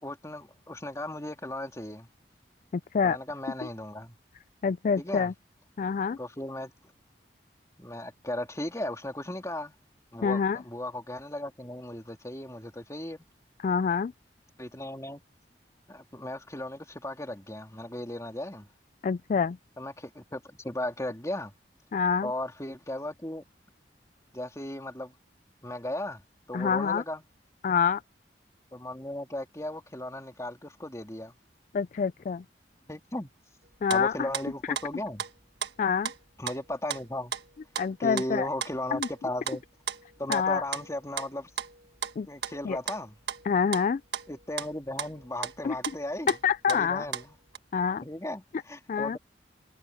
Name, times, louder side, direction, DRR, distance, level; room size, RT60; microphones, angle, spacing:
voice 1, 0.0-2.1 3.0-4.2 5.0-5.3 6.2-6.7 7.8-9.7 10.1-13.3 14.6-15.2 15.9-18.7 19.8-21.5 22.2-23.4 24.3-25.2 25.6-26.2 26.5-27.2 28.7-31.3 32.9-33.3 33.9-35.2 36.4-37.3 38.0-39.6 40.2-41.5 42.3-43.2 44.3-46.4 46.7-47.4 48.0-49.2, left 1 dB, 20° left, 3.1 m, -36 dB
voice 2, 2.7-3.2 4.6-5.3 5.8-6.2 10.2-10.6 13.6-14.1 19.0-19.6 21.9-22.3 26.5-27.0 27.6-28.0 31.7-32.4 33.8-34.3 35.8-36.1 37.8-38.5 38.9-39.1 40.3-40.6 42.2-42.3 42.6-42.8 43.4-44.0 45.6-45.7 46.3-47.1 47.7-48.0 48.9-49.2, left 6 dB, 45° left, 0.3 m, -26 dB
sound 1, 33.7-35.3 35.6-35.7 36.1-36.2 36.5-37.0 37.3-47.6, right 8 dB, 75° right, 1.5 m, -36 dB
head